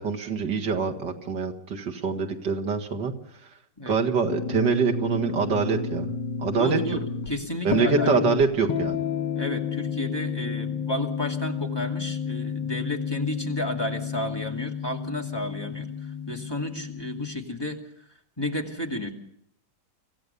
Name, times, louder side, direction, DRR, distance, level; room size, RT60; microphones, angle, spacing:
voice 1, 0.0-3.1 3.9-6.1 6.4-6.8 7.6-9.0, right 5 dB, 85° right, 2 dB, 2.5 m, -25 dB
sound 1, 4.3-17.4, left 7 dB, 85° left, 1.7 m, -31 dB
voice 2, 6.6-8.2 9.3-15.9 16.3-17.8 18.4-19.1, left 1 dB, 15° left, 0 dB, 2.5 m, -32 dB
25.0 x 16.0 x 7.0 m, 0.69 s
omnidirectional pair, 1.9 m